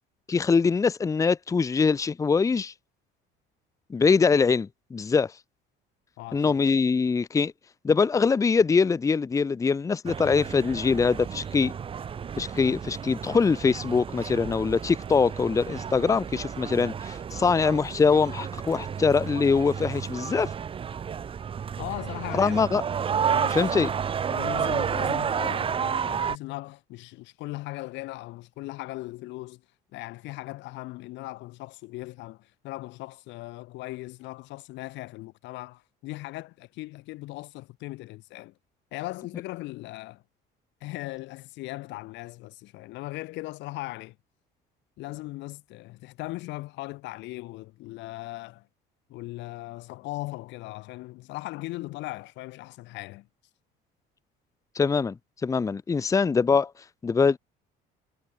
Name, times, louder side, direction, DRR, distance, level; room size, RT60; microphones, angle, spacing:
voice 1, 0.3-2.7 3.9-5.3 6.3-7.5 7.8-11.7 12.4-20.5 22.3-22.8 23.5-23.9 54.7-55.1 55.4-56.7 57.0-57.4, left 5 dB, 15° left, 1.0 m, -23 dB
voice 2, 6.2-6.5 21.8-22.9 23.3-23.9 24.3-29.6 29.9-38.5 38.9-40.2 40.8-44.2 45.0-48.7 49.1-53.3, left 19 dB, 70° left, 1.9 m, -38 dB
sound 1, 10.1-26.4, right 7 dB, 25° right, 2.2 m, -31 dB
cardioid pair, 155°, 20 cm